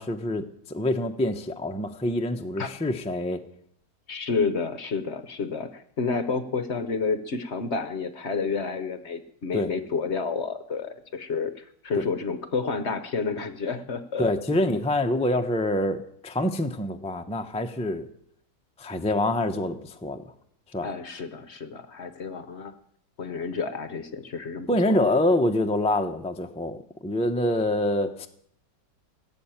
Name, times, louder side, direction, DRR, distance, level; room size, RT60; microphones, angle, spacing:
voice 1, 0.0-3.4 9.5-9.7 14.2-18.1 18.8-20.2 20.7-20.9 24.7-28.3, left 1 dB, 10° left, 5 dB, 0.4 m, -26 dB
voice 2, 4.1-14.3 20.8-22.7 23.2-25.0, left 4 dB, 45° left, 11 dB, 1.0 m, -30 dB
17.5 x 7.7 x 8.9 m, 0.69 s
omnidirectional pair, 1.9 m